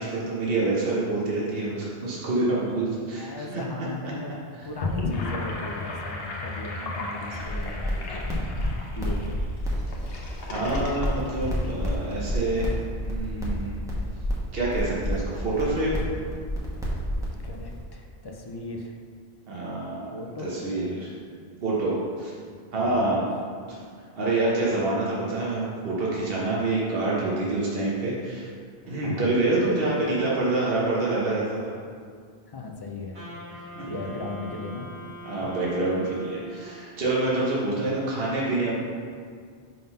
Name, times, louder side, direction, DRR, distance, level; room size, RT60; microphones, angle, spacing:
voice 1, 0.0-3.6 7.3-7.4 10.5-12.7 13.0-13.7 14.5-16.0 19.5-20.1 20.4-21.1 21.6-22.3 22.7-23.2 23.7-23.8 24.2-28.5 28.9-31.7 33.7-33.8 35.2-38.7, right 2 dB, 65° right, -6 dB, 1.3 m, -27 dB
voice 2, 3.2-4.3 4.6-8.5 8.9-9.4 17.4-19.0 20.1-21.1 22.5-23.2 28.8-29.5 29.8-30.7 32.5-34.9, left 3 dB, 40° left, 2 dB, 0.3 m, -38 dB
Gurgling / Sink (filling or washing), 4.6-12.1, left 2 dB, 65° left, 1.0 m, -34 dB
sound 1, 7.4-17.8, equal, 5° right, 1.1 m, -30 dB
Wind instrument woodwind instrument, 33.1-37.0, right 1 dB, 85° right, 2.2 m, -43 dB
5.4 x 3.8 x 5.4 m, 2.1 s
omnidirectional pair, 1.1 m